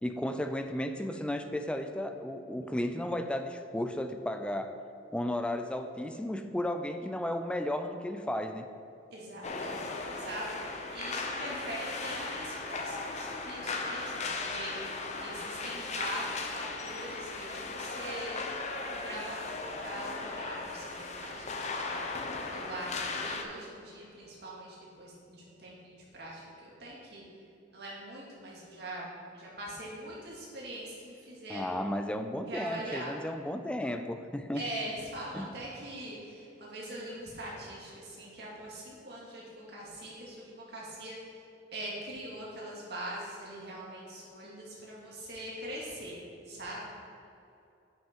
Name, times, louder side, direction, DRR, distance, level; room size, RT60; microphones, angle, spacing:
voice 1, 0.0-4.8 5.1-8.7 31.5-34.6 35.3-35.5, left 1 dB, 5° left, 7 dB, 0.3 m, -34 dB
voice 2, 9.1-18.4 18.9-27.2 27.7-31.8 32.5-33.1 34.5-41.4 41.7-46.8, right 1 dB, 65° right, -5 dB, 2.1 m, -42 dB
sound 1, 9.4-23.4, left 3 dB, 40° left, 0.7 m, -37 dB
8.2 x 6.4 x 4.5 m, 2.7 s
head